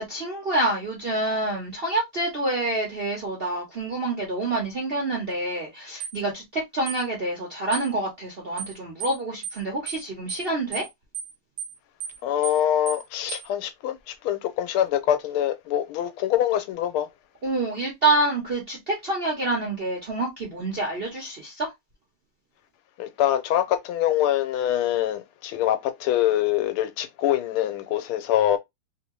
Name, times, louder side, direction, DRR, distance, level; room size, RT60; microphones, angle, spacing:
voice 1, 0.0-10.8 17.4-21.7, right 2 dB, 55° right, 0.6 m, -27 dB
sound 1, 6.0-6.2 6.9-7.0 7.7-7.9 8.6-8.7 9.0-9.2 9.4-9.6 9.9-10.0 10.3-10.5 10.7-10.9 11.1-11.3 11.6-11.7 12.0-12.2 12.4-12.6 12.9-13.0 13.3-13.5, right 8 dB, 70° right, 1.3 m, -34 dB
voice 2, 12.2-17.1 23.0-28.6, left 11 dB, 90° left, 1.5 m, -24 dB
3.4 x 2.7 x 2.9 m
omnidirectional pair, 2.3 m